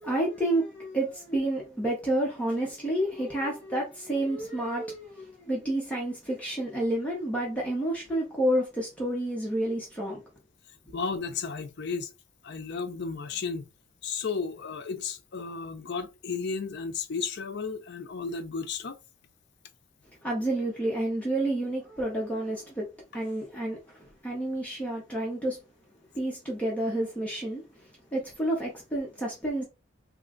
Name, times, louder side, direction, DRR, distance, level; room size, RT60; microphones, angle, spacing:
voice 1, 0.0-10.2 20.2-22.9 23.1-23.8 24.2-25.6 26.1-27.6 28.1-29.6, right 1 dB, 5° left, 0.9 m, -29 dB
voice 2, 10.9-12.1 12.4-13.7 14.0-19.0, left 5 dB, 55° left, 0.5 m, -33 dB
3.1 x 2.4 x 3.7 m
head